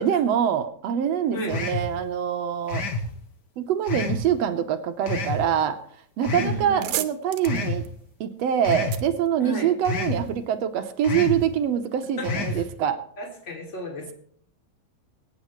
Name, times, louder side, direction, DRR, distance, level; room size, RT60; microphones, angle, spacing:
voice 1, 0.0-2.8 3.6-5.8 6.2-7.9 8.2-13.0, right 9 dB, 70° right, 8 dB, 1.8 m, -25 dB
sound 1, 1.5-1.9 2.7-3.1 3.9-4.2 5.1-5.4 6.2-6.6 7.4-7.8 8.6-9.0 9.8-10.2 11.0-11.4 12.2-12.6, left 3 dB, 45° left, 1.6 m, -28 dB
sound 2, 6.1-6.2 6.5-10.1, right 12 dB, 85° right, 2.1 m, -35 dB
voice 2, 6.3-6.9 9.4-9.7 12.2-12.6 13.2-14.1, right 1 dB, 25° left, 1 dB, 2.8 m, -33 dB
23.5 x 9.1 x 3.1 m, 0.62 s
omnidirectional pair, 3.3 m